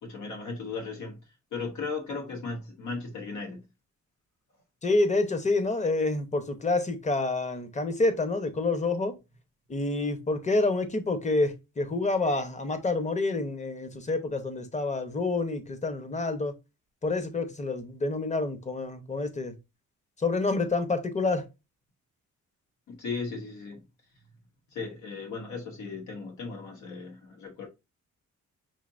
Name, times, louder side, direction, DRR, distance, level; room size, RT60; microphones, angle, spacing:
voice 1, 0.0-1.2 1.5-3.6 22.9-23.8 24.7-27.7, left 4 dB, 75° left, 1.3 m, -36 dB
voice 2, 4.8-9.2 9.7-16.5 17.0-19.5 20.2-21.5, left 3 dB, 25° left, 1.0 m, -28 dB
5.6 x 2.8 x 2.6 m
cardioid pair, 90°, 30 cm